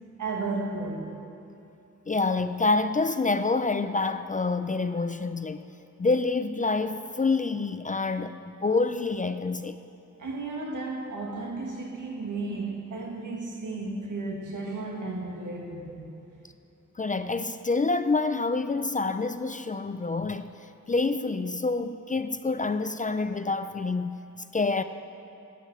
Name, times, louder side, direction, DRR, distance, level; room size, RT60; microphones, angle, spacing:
voice 1, 0.2-1.2 10.2-16.1, right 3 dB, 75° right, 1.9 m, -34 dB
voice 2, 2.1-5.6 6.0-9.8 17.0-20.5 20.9-24.2 24.5-24.8, left 3 dB, 25° left, 0.4 m, -27 dB
11.5 x 10.0 x 7.3 m
wide cardioid pair, 120°, 31 cm